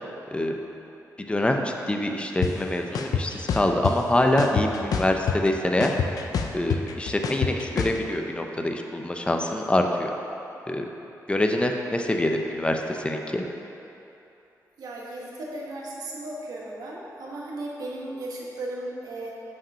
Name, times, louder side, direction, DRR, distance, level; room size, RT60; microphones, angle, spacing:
voice 1, 1.2-6.0 6.5-10.1 10.7-10.9 11.3-13.5, left 1 dB, 15° left, 3 dB, 0.6 m, -25 dB
sound 1, 2.4-2.5 2.9-3.9 4.4-5.5 5.8-8.0, left 6 dB, 70° left, 0.5 m, -26 dB
voice 2, 14.8-19.3, right 1 dB, 75° right, -3 dB, 1.3 m, -36 dB
6.0 x 5.0 x 5.5 m, 2.9 s
cardioid pair, 80°, 7 cm